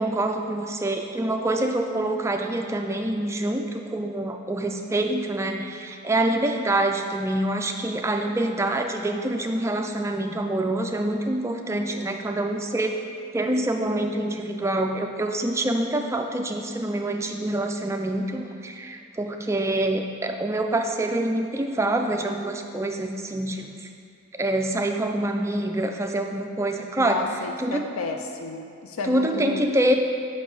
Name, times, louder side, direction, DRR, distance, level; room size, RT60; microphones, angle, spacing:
voice 1, 0.0-13.0 13.3-23.9 24.4-27.2 27.6-27.9 29.0-29.9, right 1 dB, 15° right, 3 dB, 0.3 m, -26 dB
voice 2, 27.0-29.8, left 4 dB, 85° left, 4 dB, 0.5 m, -32 dB
6.2 x 5.4 x 4.7 m, 2.4 s
head